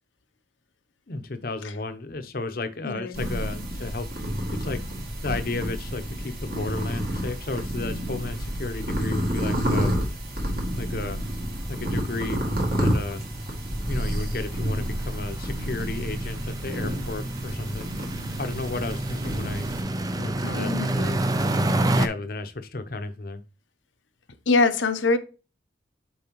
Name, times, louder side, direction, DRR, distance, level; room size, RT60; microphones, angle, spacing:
voice 1, 1.1-4.1 4.5-4.8 5.2-9.9 10.8-11.2 11.7-13.2 13.9-18.0 18.4-19.7 20.2-23.4, left 3 dB, 50° left, 0.8 m, -33 dB
voice 2, 2.8-3.3 20.4-20.9 24.5-25.2, left 3 dB, 85° left, 0.8 m, -23 dB
sound 1, 3.1-19.8, equal, 50° right, 2.2 m, -29 dB
sound 2, 5.0-5.1 5.3-5.5 5.9-6.0 6.2-22.1, right 1 dB, 20° right, 0.4 m, -31 dB
7.0 x 4.7 x 3.0 m
head